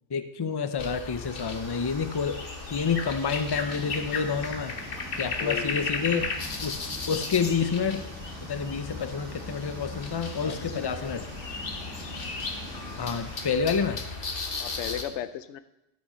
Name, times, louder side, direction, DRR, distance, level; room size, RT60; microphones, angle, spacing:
voice 1, 0.1-2.4 2.7-4.8 5.2-6.3 6.6-6.8 7.1-8.0 8.5-11.2 13.0-14.0, left 6 dB, 30° left, 9 dB, 0.4 m, -28 dB
sound 1, 0.8-15.0, left 4 dB, 50° left, 1.1 m, -35 dB
sound 2, 1.2-13.6, right 4 dB, 80° right, 1.4 m, -50 dB
sound 3, 3.4-13.2, equal, 10° right, 2.6 m, -44 dB
voice 2, 5.3-6.0 10.4-11.2 14.6-15.6, left 11 dB, 75° left, 12 dB, 0.9 m, -36 dB
13.5 x 5.8 x 5.6 m, 0.93 s
omnidirectional pair, 1.2 m